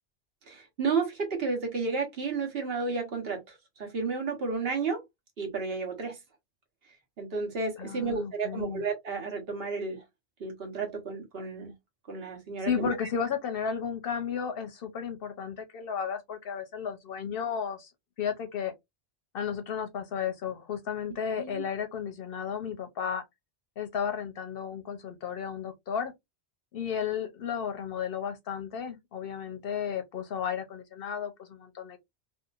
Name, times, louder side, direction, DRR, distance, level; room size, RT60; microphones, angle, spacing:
voice 1, 0.5-5.0 5.4-6.2 7.2-10.0 10.4-11.7 12.1-12.9 21.4-21.6, right 4 dB, 60° right, 1.1 m, -32 dB
voice 2, 7.8-8.8 12.6-17.9 18.2-18.7 19.3-23.2 23.8-26.1 26.7-32.0, left 7 dB, 65° left, 0.7 m, -33 dB
2.7 x 2.3 x 2.3 m
omnidirectional pair, 1.2 m